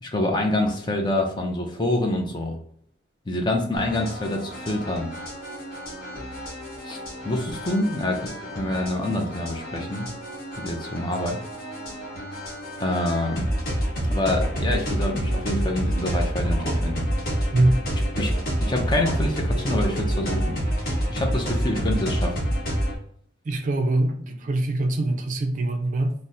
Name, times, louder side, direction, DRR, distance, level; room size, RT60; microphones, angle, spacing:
voice 1, 0.0-2.6 3.3-5.1 6.8-7.0 7.2-10.1 10.6-11.4 12.8-13.5 14.1-17.0 18.2-20.6 21.1-22.3, left 1 dB, 25° left, 2 dB, 0.4 m, -26 dB
sound 1, 3.8-23.0, equal, 50° left, 1.0 m, -28 dB
voice 2, 17.5-17.8 23.5-26.1, right 2 dB, 40° right, 4 dB, 0.4 m, -23 dB
2.7 x 2.0 x 3.5 m, 0.64 s
head